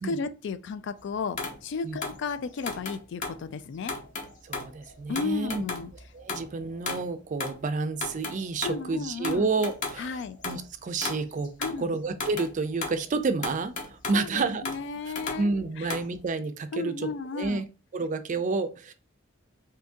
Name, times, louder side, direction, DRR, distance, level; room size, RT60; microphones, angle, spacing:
voice 1, 0.0-3.9 5.1-5.9 8.6-9.5 10.0-10.4 11.6-11.9 14.1-15.5 15.8-15.9 16.7-17.6, left 4 dB, 65° left, 0.3 m, -34 dB
sound 1, 1.4-3.4 3.8-7.1 7.4-7.6 7.9-8.8 9.2-10.7 11.0-11.8 12.2-13.1 13.4-14.3 14.7-16.1, left 3 dB, 40° left, 0.8 m, -35 dB
voice 2, 4.4-5.6 6.1-11.5 11.8-14.6 15.4-17.6 17.9-18.9, right 3 dB, 40° right, 0.4 m, -30 dB
2.8 x 2.6 x 3.5 m
head